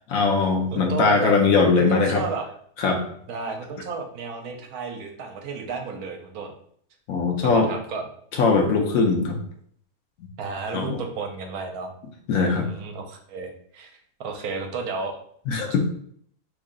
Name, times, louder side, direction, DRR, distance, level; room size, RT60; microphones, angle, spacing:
voice 1, 0.1-2.2 2.8-3.0 7.1-7.7 8.4-9.4 10.7-11.0 12.3-12.7 15.5-15.8, left 4 dB, 70° left, 3 dB, 1.0 m, -20 dB
voice 2, 0.7-1.3 1.8-2.5 3.3-6.5 7.4-8.0 10.4-11.9 12.4-13.9 14.2-15.2 15.6-15.8, right 4 dB, 75° right, 4 dB, 1.1 m, -32 dB
3.1 x 2.6 x 3.7 m, 0.63 s
omnidirectional pair, 1.6 m